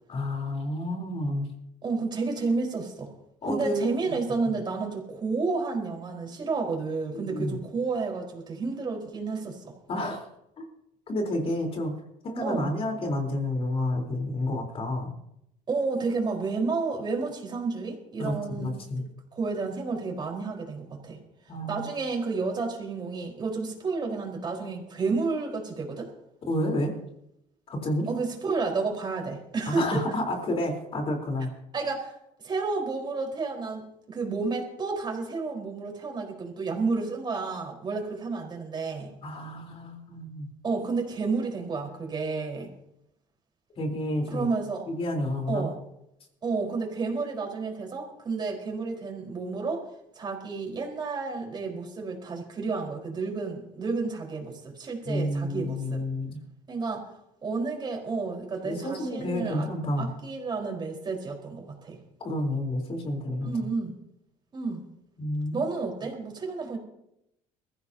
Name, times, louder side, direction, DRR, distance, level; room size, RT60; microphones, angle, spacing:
voice 1, 0.1-1.5 3.4-4.1 7.1-7.6 9.9-10.3 10.6-10.7 11.1-11.9 12.2-15.2 18.2-19.0 21.5-21.9 26.4-26.9 27.7-28.1 29.7-31.5 39.2-40.5 43.8-44.5 44.9-45.7 55.1-56.4 58.6-60.1 62.2-63.5 65.2-65.7, left 1 dB, 40° left, 2 dB, 3.9 m, -30 dB
voice 2, 1.8-3.1 3.5-9.7 12.4-12.7 15.7-19.0 19.3-21.2 21.7-26.1 28.1-30.0 31.7-32.1 32.4-39.1 40.6-42.7 44.2-44.9 45.5-45.8 46.4-49.8 50.1-56.0 56.7-57.0 57.4-59.7 60.0-62.0 63.4-63.9 64.5-64.8 65.5-66.8, right 4 dB, 30° right, 1 dB, 4.4 m, -31 dB
22.5 x 15.0 x 2.8 m, 0.81 s
cardioid pair, 115°, 15 cm